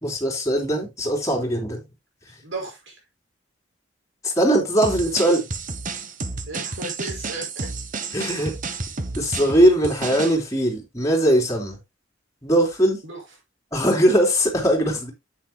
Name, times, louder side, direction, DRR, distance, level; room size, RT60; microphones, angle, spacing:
voice 1, 0.0-1.8 4.2-5.4 8.1-8.5 8.9-11.8 12.4-13.0 13.7-15.1, right 1 dB, 15° left, 3.3 m, -20 dB
voice 2, 2.4-3.0 6.5-7.7 13.0-13.2, right 2 dB, 75° right, 5.8 m, -34 dB
sound 1, 4.8-10.4, right 4 dB, 40° right, 1.1 m, -31 dB
10.5 x 8.7 x 2.2 m
head